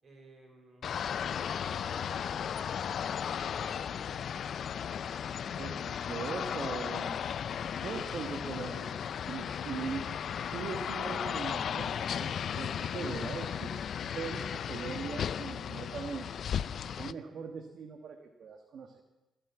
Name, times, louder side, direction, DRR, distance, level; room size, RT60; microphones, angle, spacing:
voice 1, 0.0-4.5, right 2 dB, 45° right, 2 dB, 5.5 m, -56 dB
sound 1, 0.8-17.1, left 8 dB, 60° left, 0.4 m, -35 dB
voice 2, 5.6-7.2 7.8-10.2 10.5-13.8 14.0-16.3 16.8-19.0, right 5 dB, 60° right, 5 dB, 1.3 m, -40 dB
18.0 x 7.5 x 9.0 m, 1.1 s
cardioid pair, 90°, 0 cm